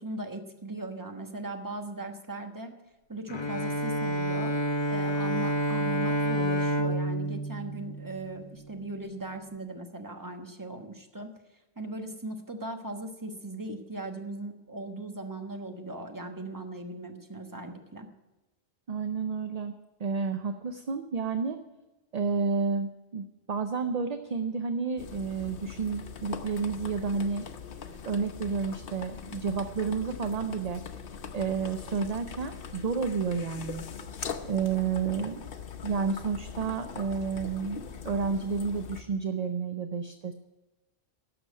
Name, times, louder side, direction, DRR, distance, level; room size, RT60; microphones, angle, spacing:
voice 1, 0.0-2.7 3.1-4.5 4.9-11.3 11.8-18.1, right 2 dB, 20° right, 5 dB, 1.2 m, -38 dB
Bowed string instrument, 3.3-8.7, equal, 30° left, 0.7 m, -29 dB
voice 2, 18.9-19.7 20.0-21.6 22.1-27.5 28.1-30.8 31.3-33.8 34.5-35.4 35.8-40.3, right 5 dB, 45° right, 8 dB, 0.6 m, -30 dB
sound 1, 25.0-39.0, left 6 dB, 60° left, 1.0 m, -41 dB
12.0 x 6.9 x 9.2 m, 1.1 s
omnidirectional pair, 1.1 m